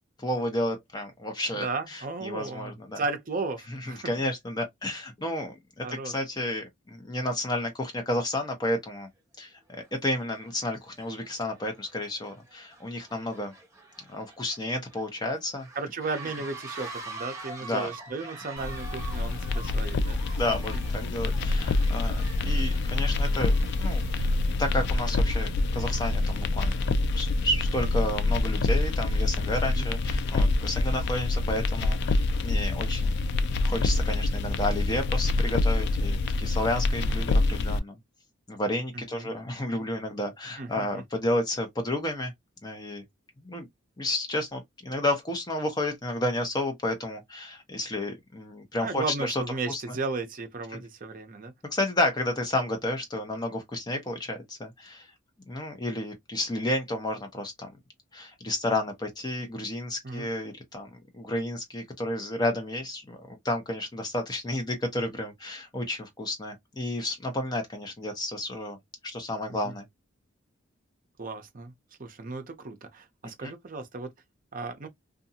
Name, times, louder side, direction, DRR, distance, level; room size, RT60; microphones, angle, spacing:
voice 1, 0.2-3.0 3.7-9.1 9.4-13.5 14.1-15.7 17.6-17.9 20.4-23.5 23.8-24.3 24.6-26.7 27.1-33.2 33.6-38.0 38.5-42.3 42.6-43.0 43.4-43.7 44.0-49.4 49.7-49.8 50.7-50.8 51.7-55.1 55.5-57.7 58.1-68.8 69.0-69.9 73.4-73.5, left 1 dB, 20° left, 0.9 m, -31 dB
voice 2, 1.5-4.1 5.8-6.2 15.8-20.4 20.7-20.8 29.7-29.9 38.9-39.3 40.6-41.0 48.8-51.5 60.0-60.3 69.5-69.7 71.2-71.7 72.0-74.1 74.5-74.9, right 3 dB, 45° right, 0.6 m, -35 dB
sound 1, 8.9-9.0 9.7-9.9 10.3-26.3, right 3 dB, 15° right, 0.9 m, -46 dB
sound 2, 18.6-37.8, left 2 dB, 55° left, 0.3 m, -26 dB
2.6 x 2.4 x 2.7 m
head